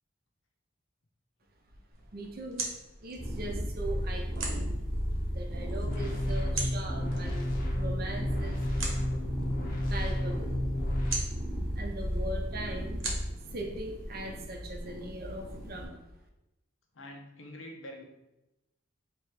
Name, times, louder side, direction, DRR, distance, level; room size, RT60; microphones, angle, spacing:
sound 1, 1.9-14.7, right 3 dB, 85° right, 1.1 m, -43 dB
voice 1, 2.1-2.7 3.0-4.7 5.2-8.6 9.1-9.2 9.9-10.6 11.7-13.1 13.5-16.0, right 1 dB, 50° right, 2 dB, 0.7 m, -40 dB
sound 2, 3.2-15.8, equal, 20° right, 1.1 m, -34 dB
sound 3, 5.9-11.1, left 1 dB, 45° left, 0.7 m, -34 dB
voice 2, 16.9-18.0, left 1 dB, 85° left, 2 dB, 0.8 m, -45 dB
3.3 x 2.9 x 4.6 m, 0.94 s
head